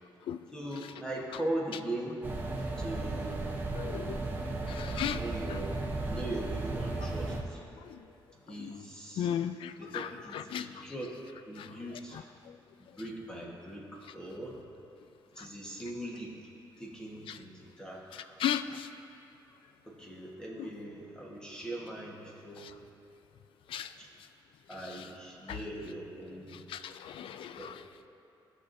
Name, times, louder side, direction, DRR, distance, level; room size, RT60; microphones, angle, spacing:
voice 1, 0.5-2.2 2.8-3.4 5.1-5.8 6.0-7.6 8.3-9.4 9.8-11.2 11.5-12.3 12.8-14.6 15.3-16.4 16.8-18.4 19.9-22.8 24.0-24.1 24.7-26.7 27.6-27.7, right 1 dB, 10° left, -3 dB, 1.3 m, -40 dB
sound 1, 2.2-7.4, right 2 dB, 20° right, 0.9 m, -35 dB
voice 2, 3.7-4.2 4.7-5.2 9.2-10.1 10.3-10.7 18.4-18.9 23.7-23.9 26.7-27.7, left 10 dB, 85° left, 11 dB, 0.4 m, -34 dB
16.5 x 5.8 x 2.6 m, 2.8 s
cardioid pair, 135°, 9 cm